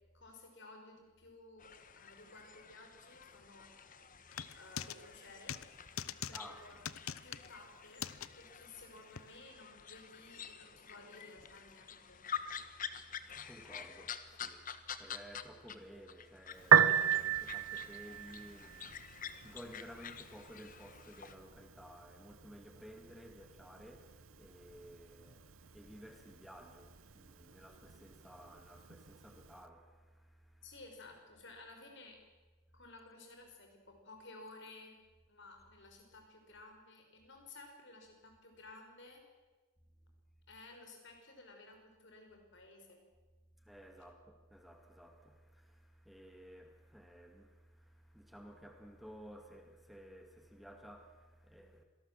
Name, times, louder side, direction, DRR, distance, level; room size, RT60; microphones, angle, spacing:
voice 1, 0.1-4.1 4.5-5.6 6.3-6.9 7.2-8.0 8.4-12.2 30.6-32.2 32.7-35.0 35.3-39.2 40.5-43.0, left 2 dB, 55° left, 5.5 m, -55 dB
sound 1, 1.6-15.8 16.1-21.4, left 8 dB, 40° left, 1.2 m, -48 dB
sound 2, 4.3-5.0 5.5-5.7 6.0-6.4 6.9-7.5 8.0-8.3 9.2-9.3, left 8 dB, 70° left, 0.8 m, -41 dB
voice 2, 6.3-6.8 13.0-30.8 43.6-51.8, equal, ahead, 2.0 m, -55 dB
Piano, 16.6-29.6, right 8 dB, 70° right, 0.9 m, -36 dB
26.0 x 18.5 x 7.5 m
head